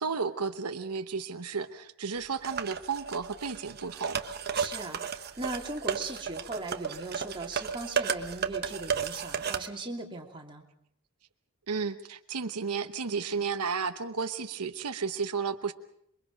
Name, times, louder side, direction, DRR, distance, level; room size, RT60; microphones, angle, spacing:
voice 1, 0.0-4.2 11.7-15.7, right 5 dB, 85° right, 8 dB, 1.0 m, -33 dB
sound 1, 2.4-9.7, right 7 dB, 45° right, 1.1 m, -34 dB
voice 2, 4.5-10.6, right 2 dB, 20° right, 0 dB, 2.8 m, -38 dB
27.5 x 23.0 x 5.3 m, 0.70 s
head